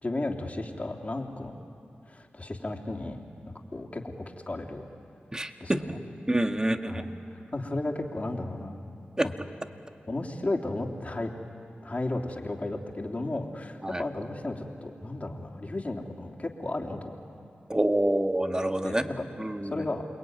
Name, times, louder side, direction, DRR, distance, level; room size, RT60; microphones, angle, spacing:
voice 1, 0.0-1.6 2.1-3.2 3.7-4.1 4.5-4.8 5.6-6.0 6.9-7.1 7.5-8.8 9.2-9.3 10.1-11.3 11.8-17.1 18.5-19.3 19.7-20.1, left 2 dB, 40° left, 1 dB, 3.0 m, -34 dB
voice 2, 5.3-6.0 6.3-7.1 9.2-9.3 13.8-14.0 17.7-19.1 19.4-19.8, right 1 dB, 20° right, 6 dB, 1.7 m, -27 dB
28.5 x 21.5 x 9.5 m, 2.6 s
cardioid pair, 45°, 4 cm